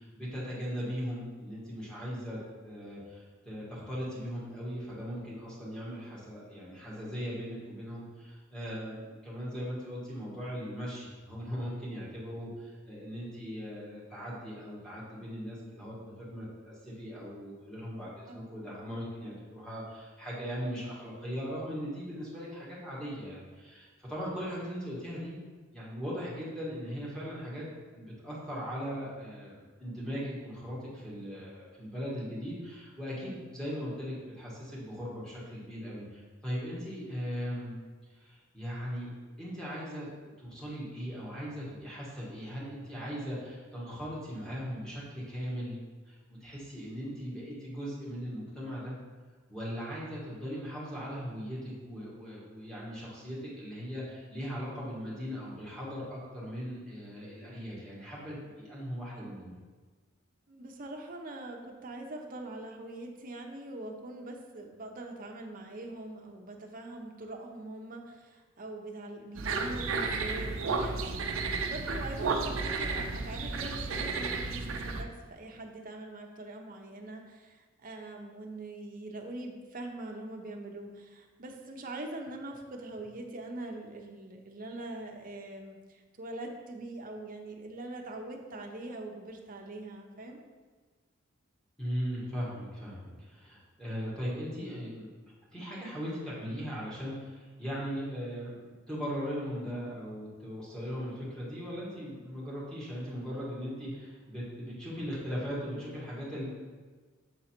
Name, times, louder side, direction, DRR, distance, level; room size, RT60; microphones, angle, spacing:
voice 1, 0.0-25.4 25.7-27.6 27.9-37.8 38.1-39.1 39.4-40.1 40.4-45.8 46.1-49.0 49.5-59.5 91.8-95.1 95.5-106.4, equal, 5° left, -8 dB, 1.8 m, -39 dB
voice 2, 60.5-71.2 71.6-90.4 99.5-99.9, right 2 dB, 45° right, 2 dB, 0.8 m, -43 dB
sound 1, 69.4-75.0, right 4 dB, 75° right, 0.6 m, -32 dB
7.5 x 3.9 x 4.4 m, 1.4 s
head